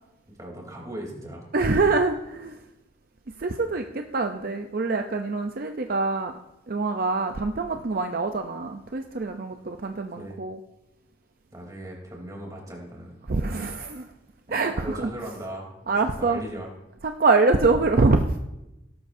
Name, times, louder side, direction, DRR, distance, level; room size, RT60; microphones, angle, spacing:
voice 1, 0.3-1.5 10.2-10.4 11.5-13.2 14.5-15.7 16.0-16.7, right 1 dB, 20° right, -1 dB, 3.3 m, -38 dB
voice 2, 1.5-2.6 3.4-6.3 6.7-10.6 13.3-14.0 14.5-15.1 15.9-16.4 17.0-18.2, right 3 dB, 55° right, 5 dB, 0.6 m, -24 dB
17.5 x 12.0 x 2.7 m, 0.92 s
head